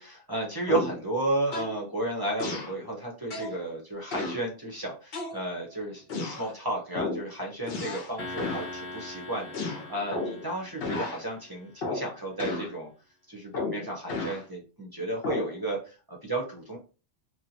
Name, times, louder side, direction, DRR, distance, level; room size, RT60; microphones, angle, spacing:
voice 1, 0.0-12.9 13.3-16.8, right 2 dB, 25° right, -2 dB, 0.7 m, -33 dB
sound 1, 0.7-1.0 1.5-1.8 2.4-2.8 3.3-3.6 4.1-4.4 5.1-5.7 6.1-6.5 6.9-7.3 7.7-8.1 8.4-8.7 9.5-10.5 10.8-11.2 11.8-12.1 12.4-12.7 13.5-14.4 15.2-15.5, left 3 dB, 60° left, 0.9 m, -33 dB
sound 2, 8.2-11.7, left 2 dB, 25° left, 0.9 m, -42 dB
3.0 x 2.2 x 2.7 m, 0.34 s
omnidirectional pair, 1.2 m